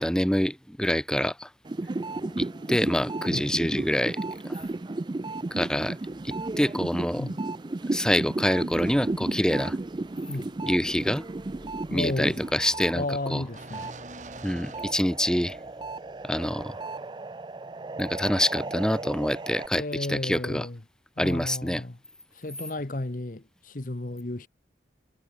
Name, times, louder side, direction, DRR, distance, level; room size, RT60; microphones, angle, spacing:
voice 1, 0.0-1.5 2.4-4.2 4.4-4.6 5.5-6.0 6.2-7.3 7.9-9.8 10.7-11.2 11.9-13.4 14.4-15.6 16.2-16.7 18.0-20.7 21.2-21.8, equal, 5° left, 1.1 m, -26 dB
sound 1, 1.6-12.9 13.3-19.7, right 2 dB, 25° right, 0.4 m, -34 dB
sound 2, 1.8-16.4, left 1 dB, 20° left, 7.9 m, -55 dB
sound 3, 8.7-15.6, right 2 dB, 40° right, 4.3 m, -48 dB
voice 2, 11.9-12.4 12.9-14.0 19.7-20.8 21.2-22.0 22.3-24.5, left 2 dB, 45° left, 1.1 m, -33 dB
head